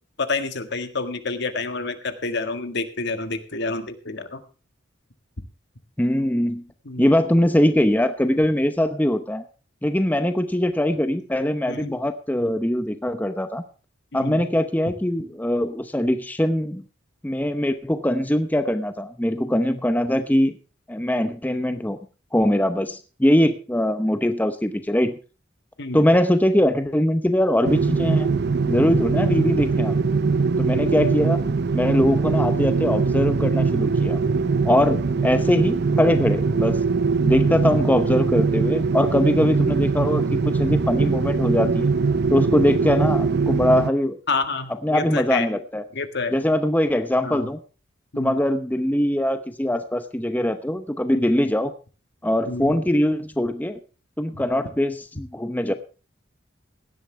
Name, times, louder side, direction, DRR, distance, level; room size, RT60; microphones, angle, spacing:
voice 1, 0.2-4.4 6.8-7.2 11.7-12.0 14.1-14.5 14.8-14.9 25.8-26.1 44.3-45.5 45.9-46.4 47.2-47.5 48.1-48.4 51.1-51.3 52.5-52.8, left 3 dB, 60° left, 9 dB, 1.7 m, -29 dB
voice 2, 6.0-6.6 7.0-9.4 9.8-13.6 14.1-16.8 17.2-20.5 20.9-22.0 22.3-25.2 25.9-28.3 28.7-30.0 30.6-31.4 31.7-34.2 34.6-36.8 37.2-41.9 42.3-44.2 44.8-45.8 46.3-47.6 48.2-51.7 52.2-53.8 54.2-55.7, left 1 dB, 10° left, 9 dB, 0.8 m, -22 dB
sound 1, 27.6-43.9, right 4 dB, 60° right, 0.6 m, -22 dB
17.0 x 11.5 x 3.3 m, 0.34 s
head